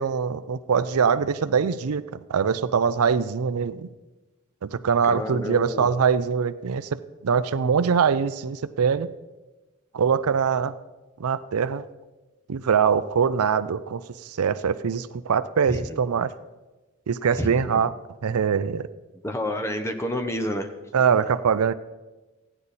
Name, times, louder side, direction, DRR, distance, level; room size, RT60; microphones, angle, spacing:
voice 1, 0.0-2.0 2.3-3.9 4.6-9.1 9.9-10.8 11.2-11.8 12.5-16.3 17.1-17.9 18.2-18.9 20.9-21.7, right 6 dB, 90° right, 15 dB, 0.5 m, -23 dB
voice 2, 5.0-5.9 15.7-16.0 17.3-17.9 19.2-20.7, left 1 dB, 10° left, 6 dB, 0.8 m, -29 dB
15.5 x 10.0 x 4.1 m, 1.2 s
head